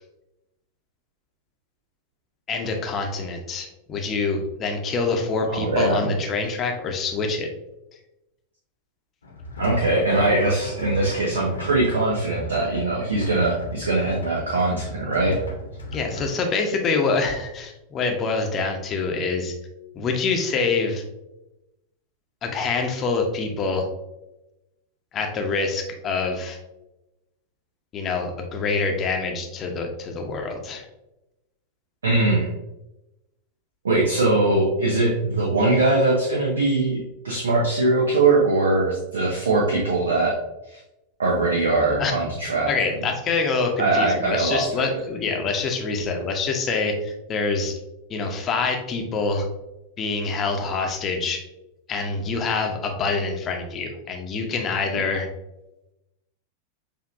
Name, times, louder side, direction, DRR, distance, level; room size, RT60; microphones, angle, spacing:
voice 1, 2.5-7.5 15.9-19.5 19.9-21.0 22.4-23.9 25.1-26.6 27.9-30.8 42.0-42.1 42.7-47.7 48.1-49.4 50.0-51.4 51.9-55.3, left 4 dB, 30° left, 3 dB, 0.8 m, -25 dB
voice 2, 5.5-6.1 9.6-15.4 32.0-32.5 33.8-40.4 40.7-40.8 41.2-42.7 43.8-44.8, right 2 dB, 70° right, -2 dB, 0.8 m, -21 dB
sound 1, 9.2-16.3, left 1 dB, 70° left, 0.9 m, -35 dB
6.5 x 2.8 x 2.5 m, 0.94 s
figure-of-eight pair, 90°, 0 cm